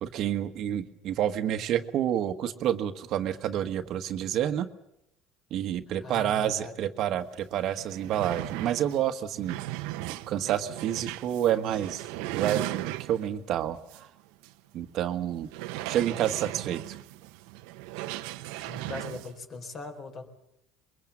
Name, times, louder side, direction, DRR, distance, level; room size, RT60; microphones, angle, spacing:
voice 1, 0.0-4.7 5.5-9.6 10.3-14.1 14.7-15.5 15.9-16.9, right 10 dB, 50° right, 8 dB, 1.3 m, -29 dB
voice 2, 6.0-6.7 18.6-20.3, left 3 dB, 40° left, 6 dB, 4.2 m, -40 dB
sound 1, 7.3-7.4 7.7-13.4 13.9-14.0 14.4-14.5 15.5-19.3, right 17 dB, 85° right, 1.0 m, -37 dB
23.0 x 22.5 x 7.3 m, 0.81 s
cardioid pair, 135°, 0 cm